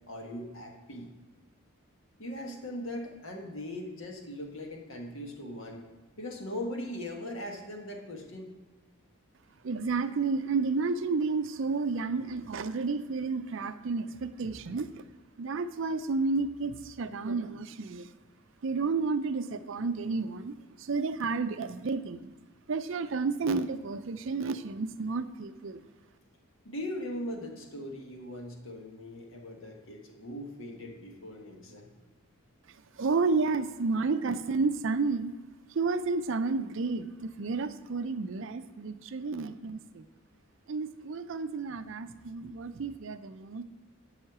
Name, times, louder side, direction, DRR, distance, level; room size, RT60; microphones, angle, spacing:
voice 1, 0.1-1.1 2.2-5.8 6.2-8.6 26.6-31.9, left 1 dB, 60° left, 2 dB, 1.4 m, -40 dB
voice 2, 9.6-14.9 15.4-18.1 18.6-22.3 22.7-25.8 33.0-35.3 35.7-40.0 40.7-43.6, right 4 dB, 60° right, 11 dB, 0.5 m, -31 dB
11.0 x 5.7 x 4.7 m, 1.3 s
head